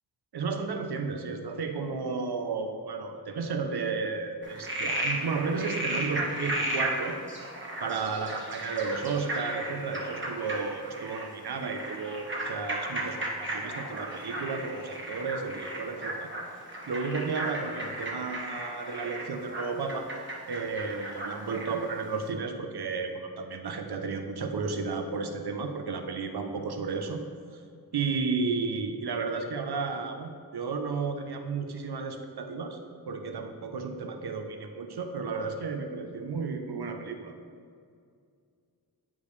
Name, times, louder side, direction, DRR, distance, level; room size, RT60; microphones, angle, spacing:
voice 1, 0.3-7.2 7.8-16.3 16.9-20.1 20.5-27.2 27.9-32.8 33.1-37.3, right 4 dB, 75° right, 6 dB, 0.7 m, -33 dB
Frog, 4.4-21.9, right 1 dB, 30° right, 1.2 m, -35 dB
8.6 x 5.3 x 3.2 m, 2.3 s
wide cardioid pair, 75°, 39 cm